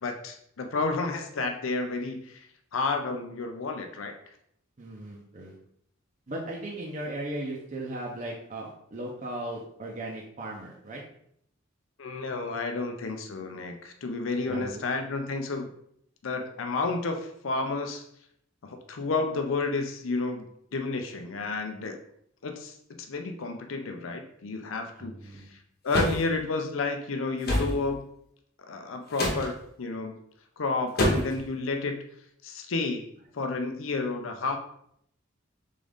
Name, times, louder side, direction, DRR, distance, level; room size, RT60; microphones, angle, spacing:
voice 1, 0.0-2.4 2.7-4.2 12.0-15.7 16.2-18.0 18.6-20.5 20.7-22.0 22.4-22.7 23.1-25.6 25.8-28.0 28.7-30.2 30.6-32.0 32.4-33.1 33.3-34.6, left 3 dB, 85° left, 5 dB, 0.6 m, -31 dB
voice 2, 4.8-5.5 6.3-11.0 14.5-14.8 25.0-25.5, right 1 dB, 40° right, -2 dB, 0.7 m, -37 dB
sound 1, 25.9-26.2 27.4-27.7 29.1-29.5 31.0-31.4, left 1 dB, 50° left, 1.0 m, -25 dB
3.9 x 3.6 x 3.5 m, 0.69 s
head